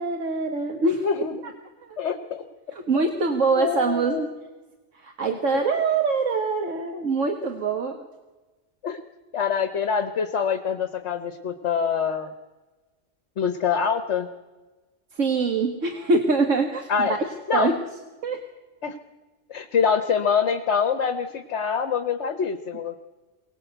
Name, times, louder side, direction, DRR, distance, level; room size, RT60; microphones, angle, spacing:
voice 1, 0.0-1.1 1.9-2.0 2.7-4.3 4.9-8.1 15.1-17.2 17.5-17.7 18.2-18.4, right 3 dB, 85° right, 4 dB, 1.9 m, -24 dB
voice 2, 1.0-1.5 2.0-2.4 3.6-4.3 5.3-5.4 8.8-9.0 9.3-12.3 13.4-14.3 16.9-17.2 17.5-17.7 18.8-19.0 19.5-22.9, left 6 dB, 65° left, 9 dB, 1.3 m, -25 dB
23.5 x 18.5 x 8.0 m, 1.2 s
omnidirectional pair, 1.3 m